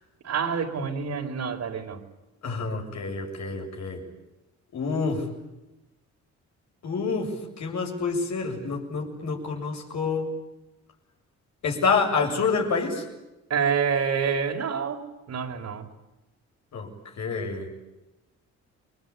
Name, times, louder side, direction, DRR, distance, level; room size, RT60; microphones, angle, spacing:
voice 1, 0.2-2.0 13.5-15.9, right 6 dB, 60° right, 3 dB, 4.8 m, -27 dB
voice 2, 2.4-4.0 4.7-5.3 6.8-10.3 11.6-13.0 16.7-17.7, left 4 dB, 65° left, 2 dB, 7.8 m, -28 dB
29.0 x 23.0 x 8.7 m, 0.99 s
cardioid pair, 90°, 30 cm